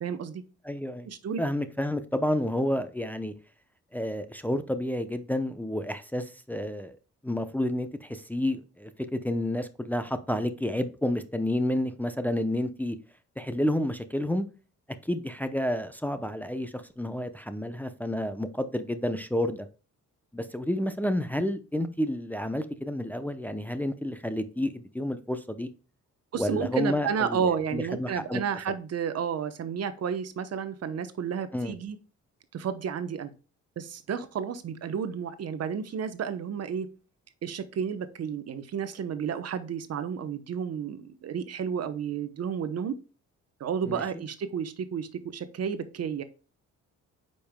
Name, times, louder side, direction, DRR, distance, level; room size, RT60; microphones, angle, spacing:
voice 1, 0.0-0.4 1.0-1.4 26.3-32.0 32.5-33.3 33.8-36.9 37.4-43.0 43.6-46.2, right 7 dB, 55° right, 0.9 m, -31 dB
voice 2, 0.6-1.1 1.4-3.3 3.9-7.0 7.2-13.0 13.4-14.5 15.0-19.7 20.3-25.7 26.4-28.4 31.5-31.7 43.9-44.0, left 1 dB, 5° left, 0.7 m, -30 dB
8.5 x 5.4 x 2.2 m
cardioid pair, 90°, 30 cm